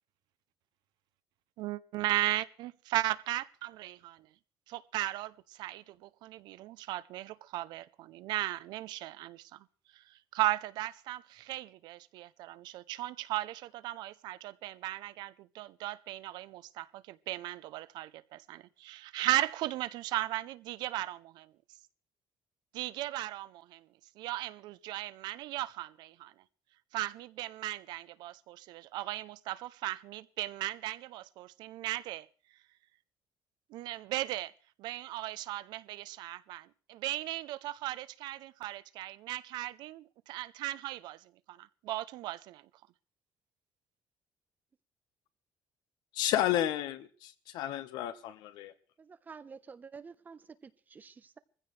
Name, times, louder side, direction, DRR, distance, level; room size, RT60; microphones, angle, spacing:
voice 1, 1.6-4.3 4.7-9.6 9.9-10.0 10.3-21.5 22.7-23.9 24.2-26.3 26.9-32.3 33.7-34.5 34.8-42.6, right 16 dB, 80° right, 0.7 m, -37 dB
voice 2, 46.1-48.7, left 12 dB, 85° left, 1.3 m, -32 dB
voice 3, 49.0-51.4, right 5 dB, 25° right, 0.9 m, -50 dB
22.5 x 15.5 x 3.3 m
cardioid pair, 150°, 7 cm